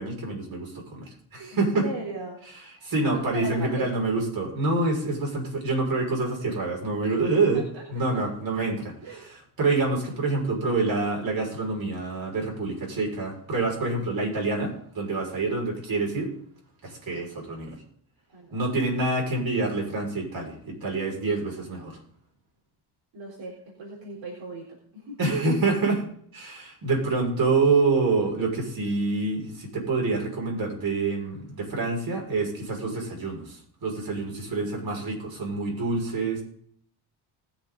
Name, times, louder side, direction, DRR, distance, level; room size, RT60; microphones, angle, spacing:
voice 1, 0.0-1.9 2.8-16.3 16.8-17.8 18.5-22.0 25.2-26.0 26.3-36.4, right 3 dB, 45° right, -1 dB, 6.0 m, -27 dB
voice 2, 1.5-2.4 2.7-3.9 7.1-8.2 9.0-9.2 18.3-18.7 23.1-24.6 24.9-25.2, right 1 dB, 65° right, -3 dB, 4.0 m, -39 dB
20.0 x 6.9 x 4.0 m, 0.62 s
cardioid pair, 100°, 48 cm